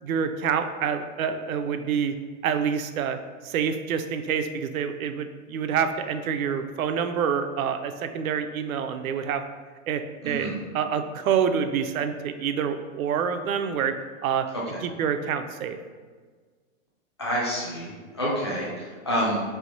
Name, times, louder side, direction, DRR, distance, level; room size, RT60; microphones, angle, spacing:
voice 1, 0.0-2.1 2.4-3.2 3.4-9.4 9.9-10.5 10.7-13.9 14.2-14.5 14.8-15.8, right 7 dB, 85° right, 8 dB, 0.6 m, -27 dB
voice 2, 10.2-10.5 14.7-14.8 17.2-19.4, equal, 20° left, -6 dB, 0.4 m, -28 dB
3.4 x 3.0 x 4.0 m, 1.5 s
hypercardioid pair, 175°, 41 cm